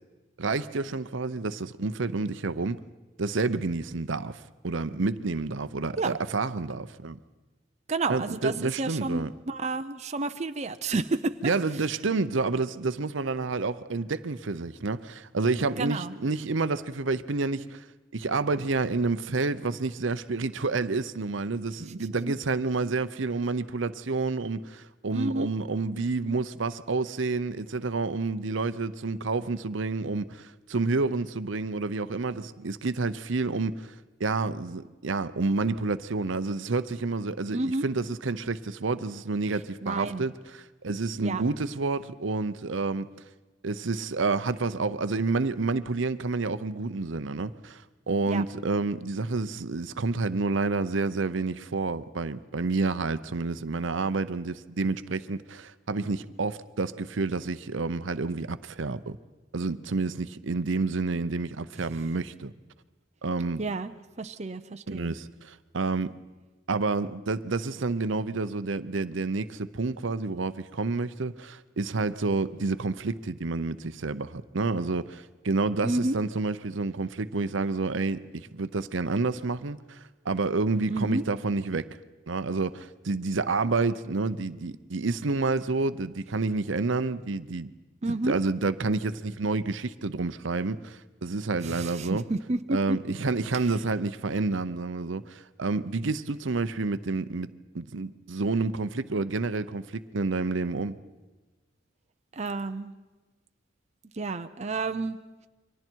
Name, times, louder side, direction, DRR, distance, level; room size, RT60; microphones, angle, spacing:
voice 1, 0.4-2.8 3.2-7.2 8.1-9.3 11.4-17.8 18.1-33.9 34.2-43.1 43.6-59.2 59.5-62.5 63.2-63.6 64.9-66.1 66.7-82.0 82.3-87.7 88.1-92.3 92.7-97.5 97.7-101.0, right 3 dB, 70° right, 0.7 m, -29 dB
voice 2, 7.9-11.5 15.8-16.1 21.8-22.0 25.1-25.5 37.5-37.8 39.8-40.2 41.2-41.4 48.3-48.4 63.6-63.9 64.2-65.2 75.8-76.2 80.9-81.2 88.0-88.4 91.6-93.0 102.3-102.9 104.1-105.2, right 2 dB, 35° right, 0.6 m, -30 dB
29.0 x 24.0 x 4.6 m
head